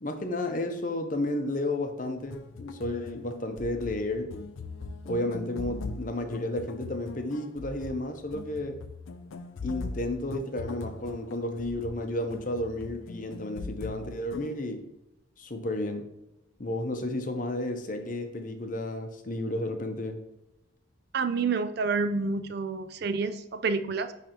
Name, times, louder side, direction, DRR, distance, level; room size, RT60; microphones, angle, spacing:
voice 1, 0.0-4.3 5.0-8.8 9.6-14.8 15.4-16.1 16.6-20.2, left 1 dB, 40° left, 6 dB, 0.7 m, -32 dB
sound 1, 2.2-14.5, left 3 dB, 75° left, 0.5 m, -41 dB
voice 2, 21.1-24.1, right 4 dB, 50° right, 10 dB, 0.4 m, -28 dB
9.9 x 3.3 x 2.9 m, 0.91 s
head